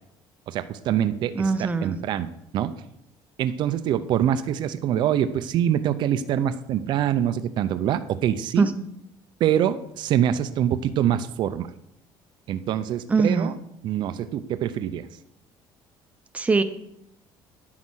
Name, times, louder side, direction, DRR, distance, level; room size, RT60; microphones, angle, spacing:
voice 1, 0.5-2.7 3.4-8.7 9.4-11.7 12.5-13.6 13.8-15.1, right 10 dB, 50° right, 11 dB, 0.7 m, -25 dB
voice 2, 1.4-2.0 8.6-8.8 13.1-13.5 16.3-16.6, right 4 dB, 15° right, 10 dB, 0.9 m, -22 dB
10.5 x 9.6 x 6.4 m, 0.77 s
cardioid pair, 160°, 10 cm